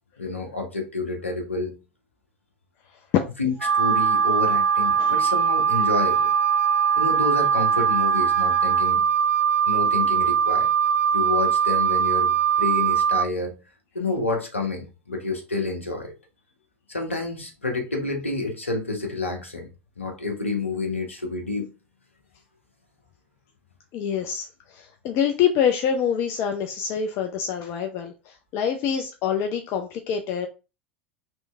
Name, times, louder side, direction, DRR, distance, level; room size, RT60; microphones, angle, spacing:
voice 1, 0.2-1.8 3.4-6.3 7.0-9.0 9.7-10.7 11.1-13.6 13.9-16.1 16.9-19.7 20.0-21.7, left 3 dB, 85° left, 0.9 m, -29 dB
Wind instrument woodwind instrument, 3.6-8.9, right 3 dB, 5° left, 0.8 m, -38 dB
Wind instrument woodwind instrument 2, 3.6-13.3, right 8 dB, 80° right, 0.5 m, -21 dB
voice 2, 23.9-30.5, left 8 dB, 40° left, 0.4 m, -26 dB
3.1 x 3.0 x 3.3 m
figure-of-eight pair, 85°, 7 cm